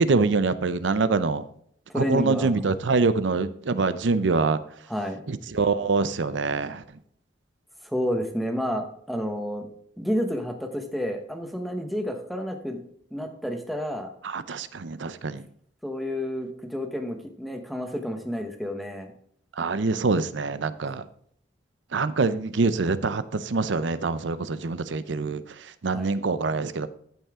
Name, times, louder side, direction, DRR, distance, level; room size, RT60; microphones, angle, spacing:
voice 1, 0.0-1.5 1.9-4.6 5.3-6.8 14.2-15.5 19.6-21.0 21.9-26.9, right 4 dB, 80° right, 0.6 m, -25 dB
voice 2, 1.9-2.6 4.9-5.2 7.8-9.7 10.0-12.8 13.1-14.1 15.8-19.1 25.9-26.1, equal, ahead, 1.1 m, -30 dB
14.5 x 5.6 x 3.7 m
head